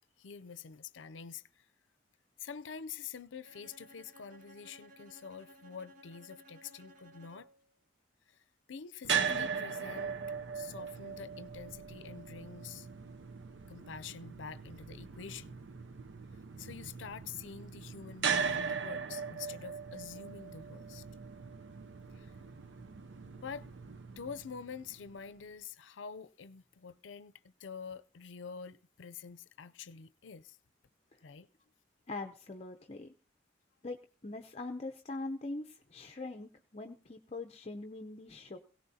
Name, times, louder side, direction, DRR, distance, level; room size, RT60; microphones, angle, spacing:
voice 1, 0.2-1.7 2.4-7.5 8.3-8.4 8.7-10.2 10.5-12.9 13.7-15.5 16.6-21.0 22.1-22.3 23.4-23.7 24.2-30.6 31.2-31.5, left 6 dB, 85° left, 0.5 m, -47 dB
Bowed string instrument, 3.4-7.7, equal, 45° right, 1.1 m, -57 dB
sound 1, 9.0-25.2, right 6 dB, 75° right, 0.6 m, -39 dB
voice 2, 32.1-33.1 33.8-34.0 34.2-38.6, left 2 dB, 35° left, 0.7 m, -42 dB
18.0 x 17.0 x 2.8 m
head